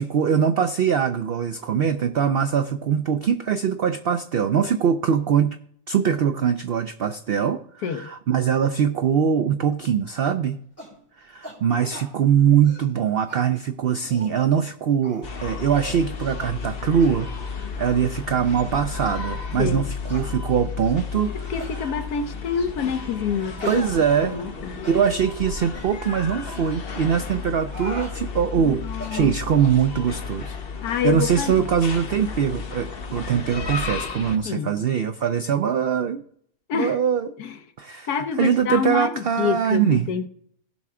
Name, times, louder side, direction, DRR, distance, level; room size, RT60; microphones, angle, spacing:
voice 1, 0.0-5.6 5.9-10.6 11.2-17.3 17.8-21.5 23.6-24.4 24.9-28.8 29.1-30.6 30.8-36.2 36.7-37.3 37.8-40.1, right 8 dB, 85° right, 9 dB, 0.5 m, -22 dB
sound 1, 10.8-11.0 11.4-11.6 11.9-12.1 12.5-12.9 13.3-13.4 13.9-14.4 15.0-15.3 15.7-16.0 16.3-16.5 17.0-17.2 17.7-18.0 18.4-18.5 19.1-19.2 20.0-20.3 20.8-21.0 21.5-21.7 22.5-22.8 23.6-24.5 24.8-25.0 25.6-25.9 26.4-26.6 27.4-28.1 28.9-29.8, equal, 10° left, 4.2 m, -40 dB
sound 2, 15.2-34.4, left 5 dB, 45° left, 1.1 m, -33 dB
voice 2, 19.6-19.9 21.5-23.8 24.2-24.8 28.6-29.3 30.8-31.7 34.4-34.8 36.7-37.0 37.4-37.5 38.1-40.3, left 6 dB, 80° left, 8 dB, 1.4 m, -27 dB
16.5 x 5.7 x 3.7 m, 0.64 s
omnidirectional pair, 1.6 m